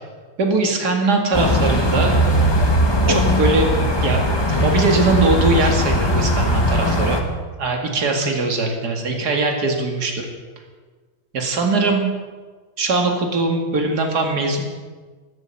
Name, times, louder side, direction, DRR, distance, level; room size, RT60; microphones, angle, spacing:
voice 1, 0.4-2.1 3.1-3.7 4.0-4.2 4.6-7.2 7.6-10.3 11.3-12.1 12.8-14.6, right 3 dB, 60° right, 2 dB, 2.7 m, -20 dB
sound 1, 1.3-7.2, equal, 15° left, 1.3 m, -18 dB
13.5 x 13.0 x 7.2 m, 1.4 s
omnidirectional pair, 2.0 m